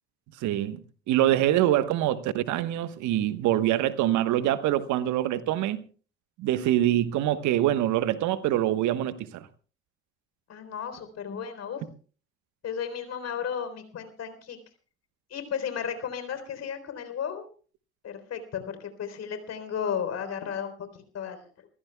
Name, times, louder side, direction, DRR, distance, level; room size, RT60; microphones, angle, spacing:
voice 1, 0.4-0.8 1.1-5.8 6.4-9.5, right 13 dB, 65° right, 1.2 m, -25 dB
voice 2, 10.5-11.8 12.6-14.6 15.3-17.4 18.0-21.7, left 7 dB, 50° left, 3.8 m, -34 dB
27.0 x 15.0 x 2.3 m
hypercardioid pair, 60°, 32 cm